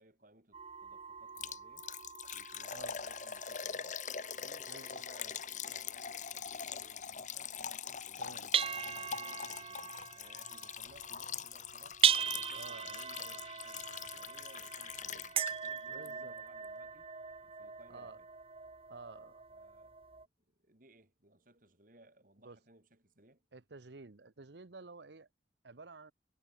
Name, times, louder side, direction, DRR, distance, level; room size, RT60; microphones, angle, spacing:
voice 1, 0.0-1.9 2.3-4.0 4.4-7.5 8.0-12.0 12.3-17.1 17.4-18.3 19.5-23.4, right 1 dB, 50° right, 4.8 m, -62 dB
sound 1, 0.5-8.1 8.5-20.3, right 7 dB, 35° right, 0.9 m, -39 dB
Liquid, 1.4-15.8 16.1-16.2 16.6-16.7, left 7 dB, 45° left, 1.3 m, -43 dB
voice 2, 4.7-5.0 8.2-8.5 12.5-13.0 15.9-16.3 17.9-18.2 18.9-19.4 22.4-22.6 23.5-25.3 25.6-26.1, right 3 dB, 75° right, 1.0 m, -51 dB
head